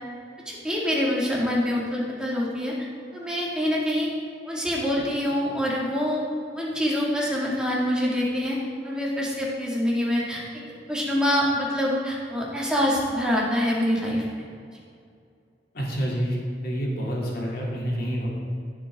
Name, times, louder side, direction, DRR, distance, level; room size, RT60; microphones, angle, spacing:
voice 1, 0.5-2.7 3.1-4.1 4.4-6.2 6.5-8.6 8.8-10.4 10.9-14.2, equal, 5° right, -5 dB, 2.2 m, -25 dB
voice 2, 15.7-16.4 16.6-18.3, equal, 55° left, -4 dB, 2.8 m, -28 dB
16.0 x 7.7 x 3.7 m, 2.4 s
head